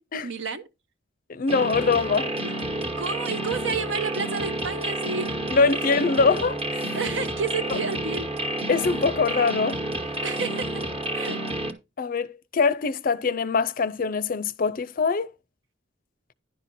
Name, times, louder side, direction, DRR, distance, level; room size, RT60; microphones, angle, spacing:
voice 1, 0.2-0.6 2.4-2.5 2.8-5.3 6.9-8.3 10.2-10.8 11.1-11.4, right 5 dB, 70° right, 1.0 m, -30 dB
voice 2, 1.3-2.4 5.5-7.0 8.7-9.8 12.0-15.3, left 4 dB, 50° left, 0.5 m, -23 dB
sound 1, 1.5-11.7, right 1 dB, 30° right, 1.2 m, -30 dB
10.5 x 5.8 x 4.2 m
head